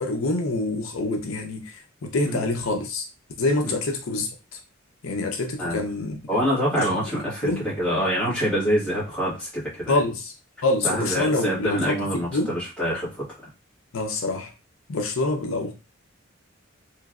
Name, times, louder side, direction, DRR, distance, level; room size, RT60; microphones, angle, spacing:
voice 1, 0.0-3.0 3.4-4.6 5.0-6.2 6.7-6.9 7.4-7.6 9.9-10.3 10.6-12.0 12.3-12.5 13.9-14.5 14.9-15.7, left 2 dB, 80° left, 0.6 m, -26 dB
voice 2, 6.3-10.0 10.8-13.2, equal, 5° left, 1.6 m, -25 dB
3.2 x 3.1 x 2.4 m
head